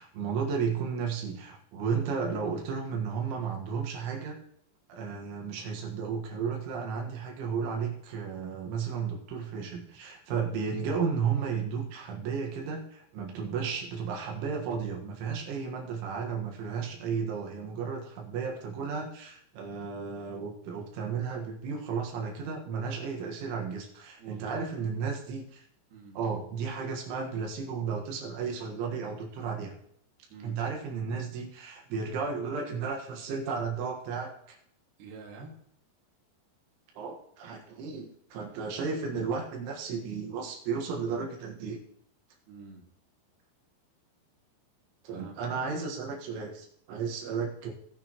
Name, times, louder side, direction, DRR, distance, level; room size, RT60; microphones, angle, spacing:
voice 1, 0.0-4.4 4.9-25.6 26.2-29.7 30.4-34.6 37.0-41.8 45.0-47.7, right 5 dB, 85° right, 0 dB, 4.0 m, -33 dB
voice 2, 24.2-24.7 25.9-26.2 30.3-30.6 35.0-35.6 42.5-42.9 45.1-45.3, right 4 dB, 60° right, -1 dB, 3.8 m, -46 dB
19.5 x 7.0 x 3.0 m, 0.68 s
omnidirectional pair, 5.3 m